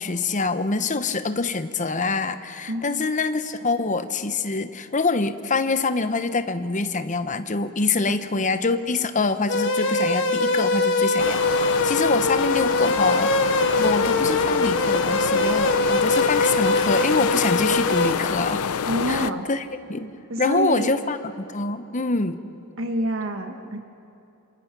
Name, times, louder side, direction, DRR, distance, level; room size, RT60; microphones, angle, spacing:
voice 1, 0.0-13.3 13.8-18.7 19.1-20.1 20.4-22.4, left 3 dB, 35° left, 11 dB, 0.9 m, -25 dB
voice 2, 2.7-3.1 8.1-8.5 18.8-19.5 20.3-20.9 22.8-23.8, right 1 dB, 60° right, 5 dB, 1.4 m, -28 dB
sound 1, 9.5-18.1, left 2 dB, 55° left, 1.5 m, -22 dB
sound 2, 11.2-19.3, left 6 dB, 75° left, 0.6 m, -27 dB
27.5 x 27.0 x 6.1 m, 3.0 s
head